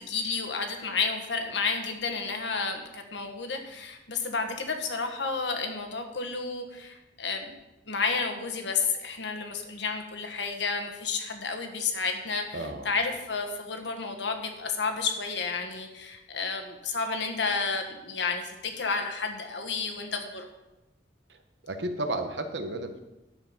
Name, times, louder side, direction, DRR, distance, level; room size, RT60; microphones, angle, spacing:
voice 1, 0.0-7.6 7.9-20.5, left 4 dB, 75° left, 5 dB, 1.4 m, -31 dB
voice 2, 12.5-12.9 21.7-23.0, right 1 dB, 75° right, 7 dB, 1.1 m, -32 dB
10.0 x 7.0 x 5.7 m, 0.98 s
head